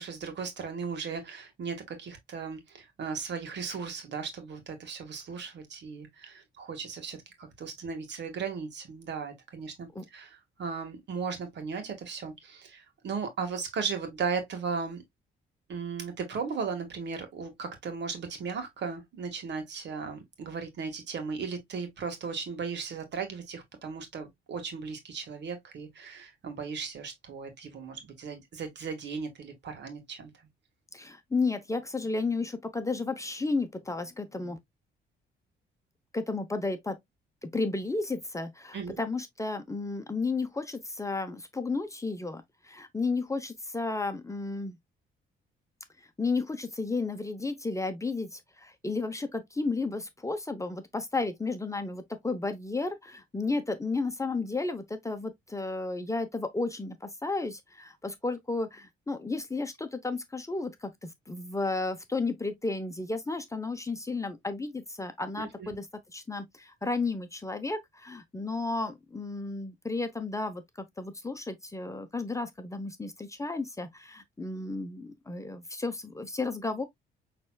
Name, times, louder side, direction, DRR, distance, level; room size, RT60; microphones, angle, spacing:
voice 1, 0.0-15.0 15.7-30.3 38.7-39.0 65.4-65.8, right 5 dB, 65° right, 1.9 m, -36 dB
voice 2, 30.9-34.6 36.1-37.0 37.4-44.8 46.2-65.9 66.1-70.6 71.0-76.8, left 3 dB, 15° left, 0.9 m, -33 dB
6.0 x 3.4 x 2.4 m
cardioid pair, 90°, 20 cm